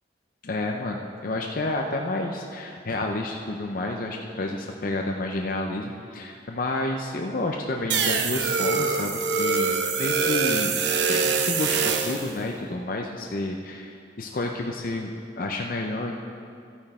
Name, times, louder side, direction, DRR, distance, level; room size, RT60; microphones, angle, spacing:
voice 1, 0.4-10.7 11.1-16.2, left 2 dB, 50° left, 1 dB, 0.6 m, -30 dB
sound 1, 7.9-12.3, right 5 dB, 80° right, 0.7 m, -24 dB
13.0 x 9.0 x 4.3 m, 2.4 s
head